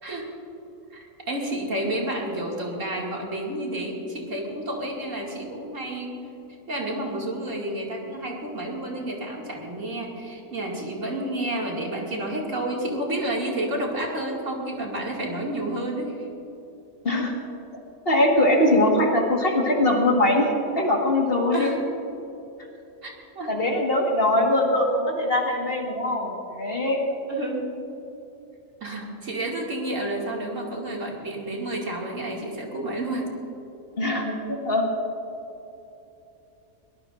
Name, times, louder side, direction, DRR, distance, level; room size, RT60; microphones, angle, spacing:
voice 1, 0.9-6.2 6.7-16.2 21.5-21.8 23.0-23.5 27.3-27.8 28.8-33.3, right 1 dB, 60° right, -2 dB, 2.7 m, -30 dB
voice 2, 18.1-21.7 23.5-27.0 34.0-34.9, left 1 dB, 40° left, 0 dB, 1.8 m, -22 dB
23.0 x 18.5 x 2.6 m, 3.0 s
omnidirectional pair, 1.5 m